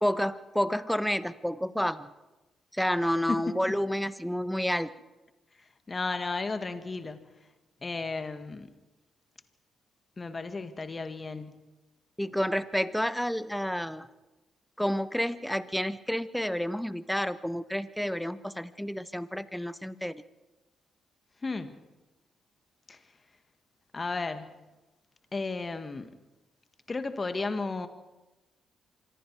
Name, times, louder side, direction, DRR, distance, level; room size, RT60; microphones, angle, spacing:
voice 1, 0.0-2.1 2.7-4.9 12.2-14.1 14.8-20.2, equal, 5° left, 14 dB, 1.2 m, -30 dB
voice 2, 3.3-3.8 5.6-7.3 7.8-8.7 10.2-11.6 21.4-21.7 22.9-23.0 23.9-24.6 25.3-26.1 26.9-27.9, left 3 dB, 35° left, 9 dB, 1.8 m, -34 dB
26.0 x 22.0 x 4.8 m, 1.1 s
hypercardioid pair, 45°, 0 cm